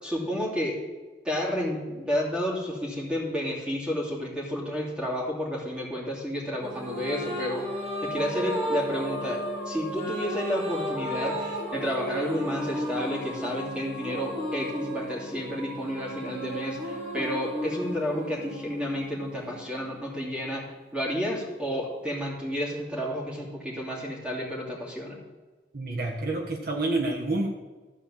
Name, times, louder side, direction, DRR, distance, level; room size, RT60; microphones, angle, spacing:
voice 1, 0.0-0.8 1.2-7.6 8.0-25.2, equal, 5° right, -4 dB, 2.7 m, -31 dB
sound 1, 6.6-20.2, equal, 35° right, 1.8 m, -34 dB
voice 2, 25.7-27.5, right 2 dB, 60° right, 0 dB, 1.3 m, -28 dB
13.0 x 4.4 x 7.3 m, 1.3 s
head